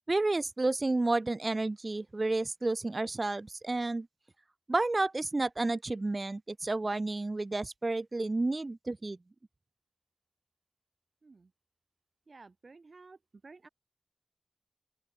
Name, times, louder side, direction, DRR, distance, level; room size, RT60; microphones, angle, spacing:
voice 1, 0.1-4.1 4.7-9.2, right 2 dB, 45° right, 1.3 m, -31 dB
voice 2, 12.3-13.2 13.4-13.7, right 3 dB, 70° right, 1.9 m, -53 dB
open air
wide cardioid pair, 65°, 0 cm